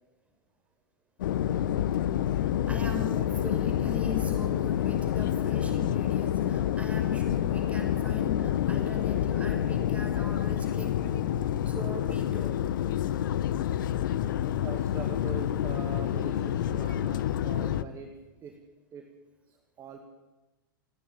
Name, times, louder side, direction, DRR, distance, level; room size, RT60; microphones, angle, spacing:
sound 1, 1.2-17.8, left 11 dB, 65° left, 0.9 m, -28 dB
voice 1, 2.4-12.6, left 1 dB, 10° right, 4 dB, 5.7 m, -40 dB
voice 2, 14.6-18.6 18.9-19.1 19.8-20.0, right 6 dB, 30° right, 5 dB, 2.2 m, -43 dB
29.0 x 10.0 x 9.1 m, 1.1 s
hypercardioid pair, 110°, 11 cm